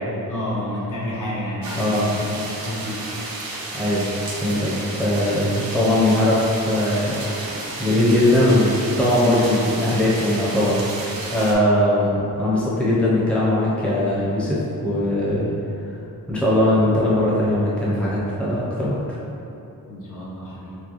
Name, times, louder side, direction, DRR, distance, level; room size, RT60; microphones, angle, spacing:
voice 1, 0.3-2.3 2.7-3.1 19.9-20.8, left 1 dB, 60° left, -6 dB, 1.0 m, -29 dB
sound 1, 1.6-11.5, right 2 dB, 85° right, 0.8 m, -32 dB
voice 2, 1.7-2.1 3.7-4.1 4.4-7.1 7.8-10.8 11.3-15.5 16.3-19.2, left 1 dB, 5° left, -8 dB, 0.7 m, -20 dB
6.4 x 2.2 x 3.0 m, 3.0 s
wide cardioid pair, 140°, 34 cm